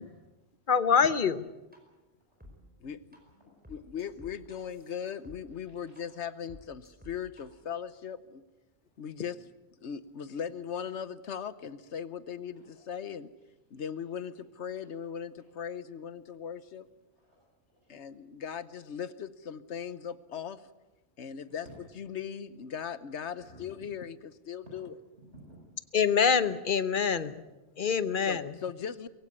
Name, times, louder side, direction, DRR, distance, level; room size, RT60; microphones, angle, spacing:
voice 1, 0.0-0.7 2.5-3.0 3.3-3.8 4.5-5.0 5.5-6.5 8.9-9.0 12.5-12.7 13.4-13.5 13.7-13.8 17.1-17.4 17.6-18.0 21.5-21.9 23.4-23.6 24.6-24.8 25.2-25.6, right 1 dB, 85° right, -3 dB, 7.5 m, -57 dB
voice 2, 0.7-1.5 25.9-27.4 27.8-28.6, left 6 dB, 50° left, 14 dB, 1.1 m, -25 dB
sound 1, 1.7-1.8 2.4-2.5 3.1-3.2 3.6-5.4 6.0-6.1 6.5-7.4, left 1 dB, 10° right, 5.0 m, -51 dB
voice 3, 3.7-8.4 9.0-9.4 9.8-13.3 13.7-16.9 17.9-20.6 21.2-21.7 22.0-24.9 28.3-29.1, left 8 dB, 80° left, 15 dB, 1.3 m, -39 dB
22.5 x 16.0 x 9.7 m, 1.1 s
omnidirectional pair, 1.1 m